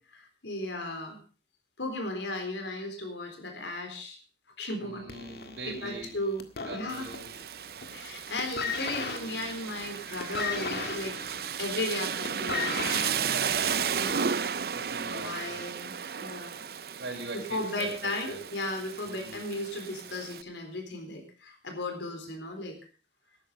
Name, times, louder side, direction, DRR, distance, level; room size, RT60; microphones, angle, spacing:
voice 1, 0.1-1.2 1.8-4.2 4.6-5.0 5.7-6.4 6.7-7.1 7.9-11.2 11.6-13.2 13.8-14.4 15.1-15.9 16.2-16.6 17.3-22.8, left 1 dB, 85° left, 5 dB, 3.9 m, -35 dB
voice 2, 4.8-6.1 6.7-7.3 14.7-15.6 17.0-18.4 19.1-19.4, right 2 dB, 90° right, 0 dB, 4.0 m, -41 dB
sound 1, 5.1-7.4 7.7-8.1 8.4-14.3 15.2-15.3, left 4 dB, 60° left, 1.8 m, -36 dB
Rain, 6.9-20.4, right 7 dB, 55° right, 0.6 m, -34 dB
13.5 x 11.5 x 5.1 m, 0.37 s
head